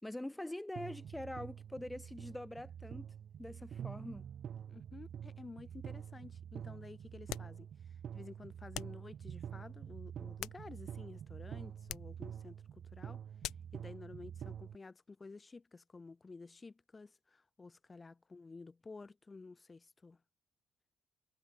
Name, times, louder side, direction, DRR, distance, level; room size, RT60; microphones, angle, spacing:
voice 1, 0.0-3.1 3.4-4.3, left 1 dB, 10° left, 4.8 m, -44 dB
sound 1, 0.8-14.8, right 9 dB, 60° right, 1.8 m, -47 dB
voice 2, 4.7-13.2 13.7-20.2, left 3 dB, 25° left, 6.7 m, -52 dB
sound 2, 7.3-7.6 8.7-9.0 10.1-11.0 11.8-12.2 13.4-13.8, left 15 dB, 90° left, 2.4 m, -45 dB
cardioid pair, 90°, 0 cm